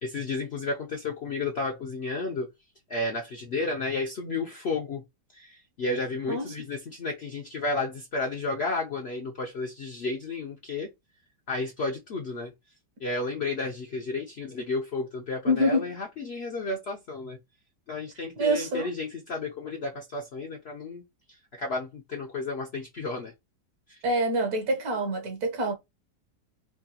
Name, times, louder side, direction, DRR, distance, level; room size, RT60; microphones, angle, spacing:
voice 1, 0.0-2.5 2.9-5.0 5.3-10.9 11.5-12.5 13.0-17.4 17.9-21.0 21.6-23.3 23.9-24.0, left 3 dB, 60° left, 0.6 m, -32 dB
voice 2, 15.4-15.9 18.4-18.9 24.0-25.7, equal, 65° right, 1.4 m, -26 dB
4.7 x 2.3 x 2.8 m
omnidirectional pair, 1.8 m